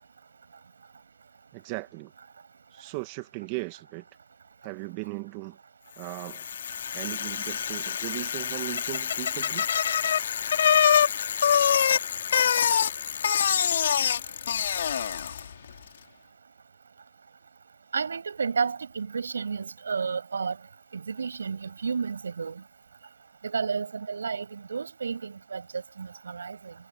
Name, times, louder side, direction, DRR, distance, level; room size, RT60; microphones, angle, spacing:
voice 1, 1.5-2.1 2.7-4.0 4.6-5.6 6.0-6.5 6.9-9.7 11.4-11.5, right 25 dB, 25° right, 1.8 m, -37 dB
Bicycle, 6.1-15.5, left 8 dB, 55° left, 2.8 m, -25 dB
voice 2, 17.9-20.6 20.9-22.6 23.4-26.7, right 5 dB, 75° right, 7.4 m, -31 dB
hypercardioid pair, 155°, 0 cm